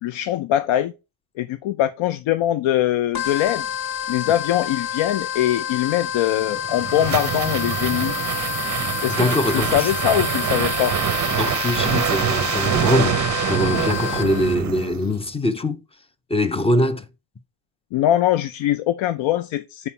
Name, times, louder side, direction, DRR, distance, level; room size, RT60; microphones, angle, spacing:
voice 1, 0.0-0.9 1.4-3.7 4.1-8.1 9.0-10.9 17.9-19.9, left 12 dB, 80° left, 0.6 m, -22 dB
sound 1, 3.1-14.6, left 11 dB, 50° left, 0.9 m, -29 dB
sound 2, 6.4-15.2, right 10 dB, 40° right, 0.5 m, -25 dB
voice 2, 9.1-9.9 11.3-15.8 16.3-17.1, left 1 dB, 15° left, 0.4 m, -22 dB
5.7 x 4.3 x 4.5 m
cardioid pair, 145°, 46 cm